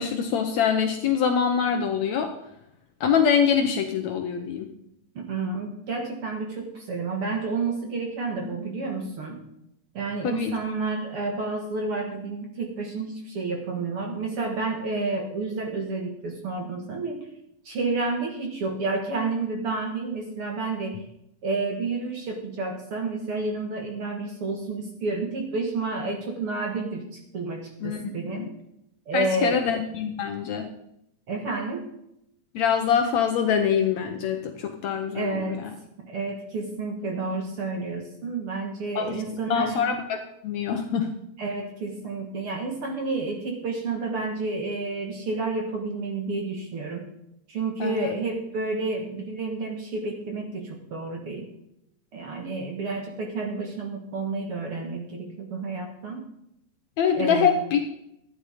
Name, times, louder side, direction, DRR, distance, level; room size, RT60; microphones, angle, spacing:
voice 1, 0.0-2.3 3.0-4.7 10.2-10.5 27.8-28.0 28.3-28.5 29.1-30.6 32.6-35.7 39.0-39.2 39.5-40.2 40.4-41.1 47.8-48.2 57.0-57.8, left 7 dB, 70° left, 5 dB, 1.8 m, -24 dB
voice 2, 5.3-9.4 9.9-17.3 17.7-21.0 21.4-28.5 29.1-29.6 31.3-31.9 35.1-35.6 36.0-39.8 41.4-47.1 47.5-51.5 52.1-56.2 57.1-57.5, right 3 dB, 50° right, 2 dB, 1.9 m, -30 dB
13.0 x 9.7 x 4.9 m, 0.79 s
omnidirectional pair, 3.9 m